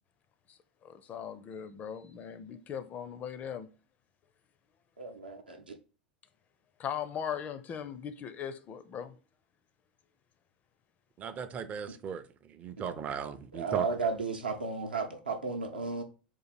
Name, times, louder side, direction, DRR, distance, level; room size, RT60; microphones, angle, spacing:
voice 1, 0.5-3.7 6.8-9.2, left 8 dB, 30° left, 0.4 m, -39 dB
voice 2, 5.0-5.6 12.8-12.9 13.5-16.0, right 4 dB, 80° right, 0.7 m, -34 dB
voice 3, 11.2-12.2 12.6-13.9, right 7 dB, 30° right, 0.4 m, -37 dB
3.8 x 2.6 x 4.2 m
figure-of-eight pair, 85°, 5 cm